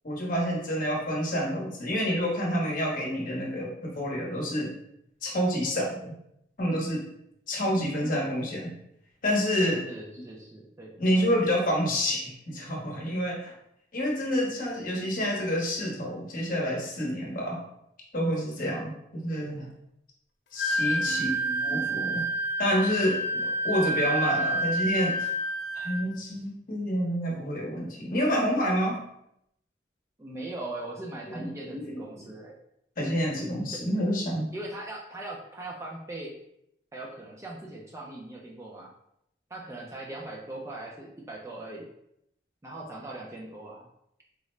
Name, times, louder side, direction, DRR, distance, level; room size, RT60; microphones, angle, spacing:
voice 1, 0.0-4.7 5.2-6.1 6.6-7.1 7.5-8.7 9.2-9.9 11.0-13.5 13.9-17.6 18.1-19.7 20.5-21.3 21.6-22.3 22.6-25.2 25.7-29.0 31.3-32.0 33.0-34.5, equal, 50° left, -2 dB, 0.8 m, -28 dB
voice 2, 9.8-11.3 21.0-21.7 30.2-32.6 33.7-33.8 34.5-36.3 36.9-38.9 39.5-41.9 42.6-43.9, right 2 dB, 15° right, -2 dB, 0.4 m, -40 dB
Wind instrument woodwind instrument, 20.6-26.0, right 1 dB, 80° left, 0.5 m, -28 dB
3.7 x 2.1 x 3.1 m, 0.77 s
head